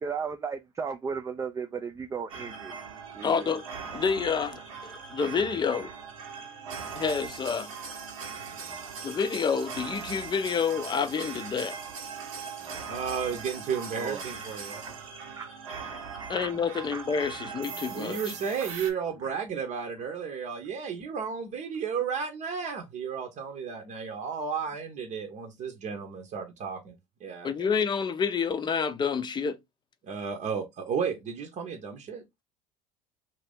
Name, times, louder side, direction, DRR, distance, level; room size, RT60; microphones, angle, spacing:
voice 1, 0.0-2.8 3.1-3.5 6.7-6.9 8.5-8.9 12.6-12.8 14.0-14.2 14.8-14.9 15.4-15.5 15.9-16.5 16.9-17.0 18.1-18.2 18.6-18.7 19.2-19.4, right 6 dB, 20° right, 0.4 m, -36 dB
sound 1, 2.3-18.9, right 5 dB, 90° right, 1.1 m, -40 dB
voice 2, 3.2-3.6 3.9-5.9 7.0-7.7 9.0-11.8 16.3-18.3 27.4-29.6, left 6 dB, 25° left, 0.6 m, -28 dB
voice 3, 12.9-14.9 17.9-26.9 27.2-27.5 30.0-32.2, right 6 dB, 50° right, 0.8 m, -33 dB
2.9 x 2.6 x 3.3 m
hypercardioid pair, 80°, 17 cm